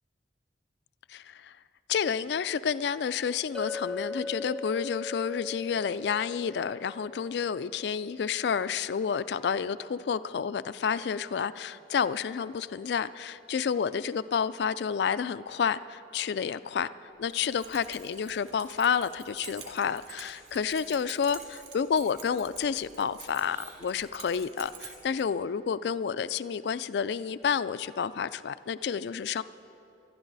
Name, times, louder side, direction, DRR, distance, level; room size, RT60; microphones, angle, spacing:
voice 1, 1.1-1.6 1.9-16.9 17.2-29.4, left 7 dB, 70° left, 15 dB, 0.3 m, -30 dB
Chink clink, 3.5-7.8, left 4 dB, 5° left, 0.6 m, -39 dB
Keys jangling, 17.3-25.2, right 6 dB, 35° right, 2.8 m, -48 dB
23.5 x 12.0 x 4.0 m, 2.7 s
head